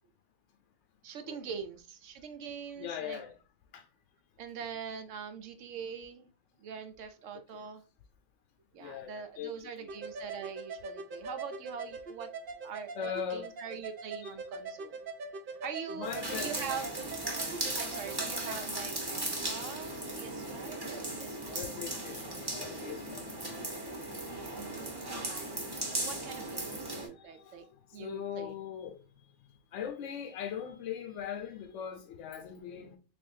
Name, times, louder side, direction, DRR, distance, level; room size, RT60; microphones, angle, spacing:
voice 1, 1.0-3.2 4.4-6.3 6.6-7.8 8.7-12.3 12.6-15.0 15.6-17.1 17.7-22.1 24.5-27.7 27.9-28.5, right 6 dB, 80° right, 0.9 m, -43 dB
voice 2, 2.8-3.3 3.7-3.8 7.5-7.6 8.8-9.6 9.8-9.9 12.9-13.5 14.2-14.3 15.9-16.5 21.5-23.2 26.6-29.0 29.7-33.0, left 8 dB, 75° left, 0.9 m, -40 dB
sound 1, 9.9-18.6, right 4 dB, 55° right, 0.7 m, -43 dB
sound 2, 16.0-27.1, right 1 dB, 20° right, 0.8 m, -37 dB
3.5 x 3.3 x 2.6 m
omnidirectional pair, 1.3 m